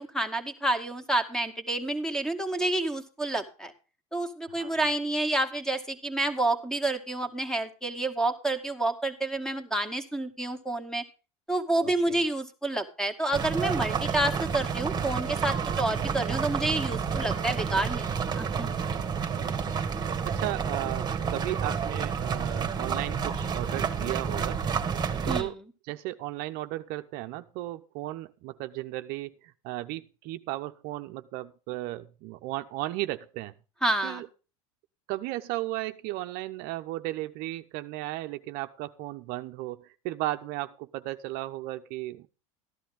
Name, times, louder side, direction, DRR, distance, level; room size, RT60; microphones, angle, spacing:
voice 1, 0.0-3.7 4.1-11.0 11.5-18.8 25.3-25.6 33.8-34.2, right 2 dB, 5° left, 8 dB, 2.3 m, -29 dB
voice 2, 4.5-4.8 11.8-12.2 18.4-18.5 19.1-19.6 20.0-24.6 25.2-25.6 25.8-33.5 34.0-34.3 35.1-42.3, right 17 dB, 60° right, 9 dB, 0.9 m, -35 dB
sound 1, 13.3-25.4, right 6 dB, 25° right, 1.8 m, -30 dB
14.0 x 11.5 x 3.6 m, 0.34 s
hypercardioid pair, 100°, 18 cm